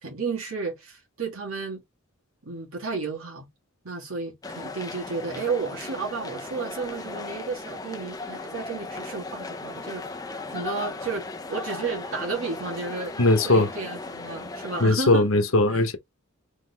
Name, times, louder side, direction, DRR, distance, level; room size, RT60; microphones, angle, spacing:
voice 1, 0.0-1.8 2.4-3.5 3.8-10.2 10.5-13.1 13.4-15.3 15.7-15.8, right 4 dB, 80° right, 1.6 m, -32 dB
sound 1, 4.4-14.9, left 3 dB, 20° left, 0.6 m, -37 dB
voice 2, 13.2-13.7 14.8-16.0, left 2 dB, 80° left, 1.0 m, -19 dB
3.8 x 3.5 x 3.4 m
head